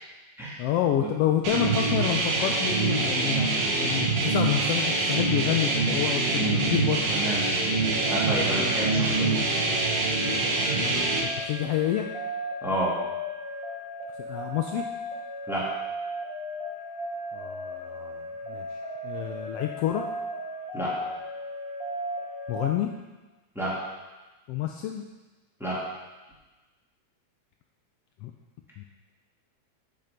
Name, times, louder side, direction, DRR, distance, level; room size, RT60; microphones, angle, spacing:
voice 1, 0.6-3.5 3.8-7.0 10.7-12.1 14.2-14.8 17.3-18.2 18.5-18.7 19.0-20.0 22.5-22.9 24.5-25.0 28.2-28.3 28.8-28.9, left 11 dB, 90° left, 4 dB, 1.3 m, -28 dB
sound 1, 1.4-11.2, right 3 dB, 70° right, 2.5 m, -25 dB
voice 2, 6.3-6.7 7.1-7.4 8.1-9.3 12.6-12.9 15.5-15.7 20.7-20.9 23.5-23.7 25.6-25.8, right 1 dB, ahead, -7 dB, 2.0 m, -29 dB
sound 2, 7.7-22.7, equal, 45° right, 2.4 m, -36 dB
8.1 x 7.2 x 5.1 m, 1.2 s
omnidirectional pair, 3.3 m